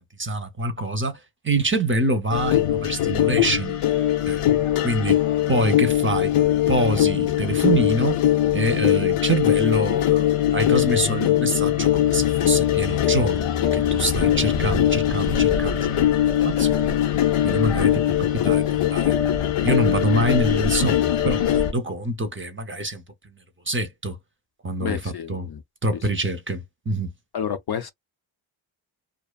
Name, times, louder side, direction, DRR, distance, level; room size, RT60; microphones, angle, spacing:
voice 1, 0.2-1.2 1.4-4.0 4.3-4.4 4.8-5.2 5.5-6.3 6.7-8.2 8.5-15.9 16.4-16.9 17.4-19.1 19.6-23.0 23.7-24.2 24.6-25.5 25.8-27.1, right 2 dB, 25° right, 0.6 m, -25 dB
sound 1, 2.3-21.7, left 11 dB, 85° left, 0.7 m, -21 dB
voice 2, 24.8-25.6 27.3-27.9, left 8 dB, 50° left, 0.5 m, -29 dB
2.5 x 2.3 x 2.3 m
cardioid pair, 85°, 50 cm